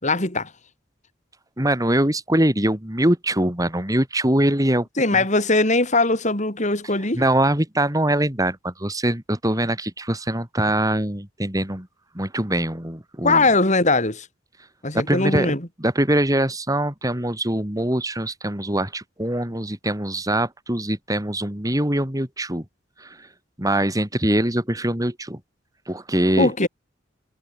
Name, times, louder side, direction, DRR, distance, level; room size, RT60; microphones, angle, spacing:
voice 1, 0.0-0.5 5.0-7.2 13.2-14.3 14.8-15.6 26.4-26.7, left 2 dB, 40° left, 6.9 m, -20 dB
voice 2, 1.6-4.9 5.2-5.3 7.1-11.9 12.2-13.5 14.9-15.5 15.8-22.6 23.0-23.3 23.6-25.4 25.9-26.7, right 1 dB, 20° right, 3.8 m, -23 dB
head